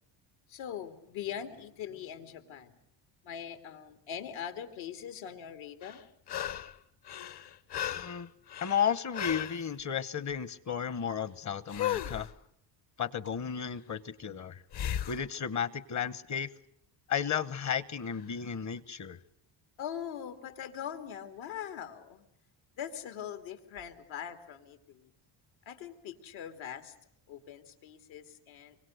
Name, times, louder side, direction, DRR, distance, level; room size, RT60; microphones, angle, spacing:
voice 1, 0.5-2.7 3.2-6.0 19.8-22.2 22.8-25.1 25.7-26.9 27.3-28.8, left 9 dB, 80° left, 3.1 m, -42 dB
sound 1, 5.8-6.8 7.1-9.6 11.7-12.3 14.7-15.2 18.1-18.2, left 11 dB, 55° left, 1.3 m, -36 dB
voice 2, 8.0-8.3 8.6-12.3 13.0-14.6 15.1-16.5 17.1-19.2, left 7 dB, 35° left, 1.0 m, -33 dB
24.5 x 24.0 x 8.0 m
cardioid pair, 145°, 47 cm